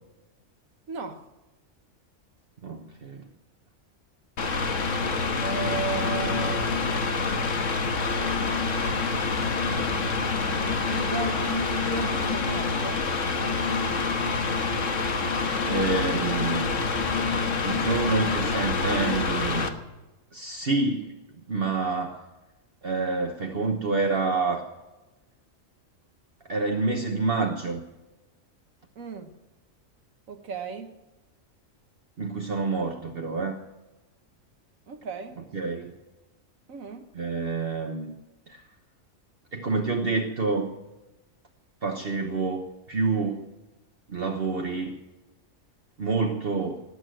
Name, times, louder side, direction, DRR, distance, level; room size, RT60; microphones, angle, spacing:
voice 1, 0.9-1.2 5.4-6.7 9.6-13.0 29.0-29.3 30.3-31.0 34.9-35.4 36.7-37.1, right 5 dB, 85° right, 5 dB, 1.6 m, -35 dB
voice 2, 2.6-3.3 15.7-16.7 17.6-19.7 20.3-21.1 21.5-22.2 22.8-24.6 26.4-27.8 32.2-33.6 35.5-36.0 37.1-38.1 38.5-38.6 39.5-40.8 41.8-43.4 44.1-45.0 46.0-46.8, right 3 dB, 45° right, 2 dB, 1.4 m, -28 dB
Mechanical fan, 4.4-19.7, left 4 dB, 70° left, 1.7 m, -26 dB
19.0 x 8.9 x 7.7 m, 1.1 s
omnidirectional pair, 1.4 m